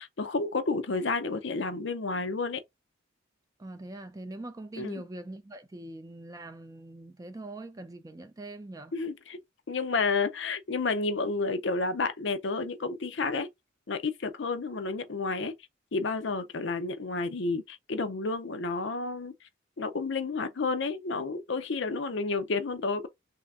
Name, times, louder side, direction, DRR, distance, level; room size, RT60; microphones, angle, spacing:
voice 1, 0.0-2.6 4.8-5.0 8.9-9.4 9.7-13.5 13.9-15.5 15.9-19.3 19.8-23.1, left 3 dB, 60° left, 0.6 m, -30 dB
voice 2, 3.6-8.9, right 2 dB, 15° right, 0.4 m, -42 dB
3.3 x 2.8 x 3.5 m
head